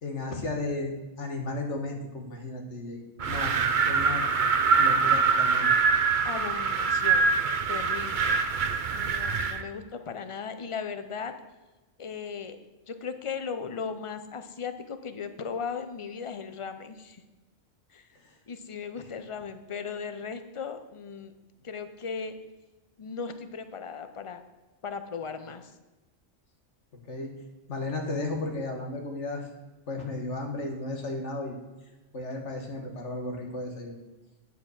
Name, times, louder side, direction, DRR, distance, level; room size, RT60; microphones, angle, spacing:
voice 1, 0.0-4.3 4.8-5.7 18.1-18.4 19.0-19.2 27.0-27.3 27.7-29.5 29.9-34.0, left 2 dB, 70° left, 2 dB, 1.8 m, -34 dB
Wind, 3.2-9.6, right 5 dB, 50° right, 0.7 m, -24 dB
voice 2, 6.2-7.3 7.7-8.4 8.9-11.3 12.0-12.6 12.9-17.2 17.9-18.1 18.5-21.3 21.6-22.3 23.0-24.4 24.8-25.7, left 6 dB, 35° left, 9 dB, 0.6 m, -37 dB
9.5 x 5.8 x 6.4 m, 1.1 s
omnidirectional pair, 1.3 m